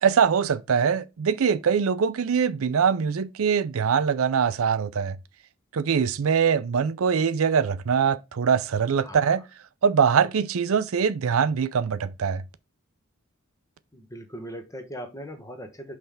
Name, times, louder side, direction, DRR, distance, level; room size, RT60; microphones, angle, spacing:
voice 1, 0.0-5.2 5.7-9.4 9.8-12.4, right 6 dB, 75° right, 0.5 m, -23 dB
voice 2, 9.0-9.4 13.9-16.0, equal, 15° left, 1.1 m, -39 dB
5.5 x 3.4 x 5.6 m
head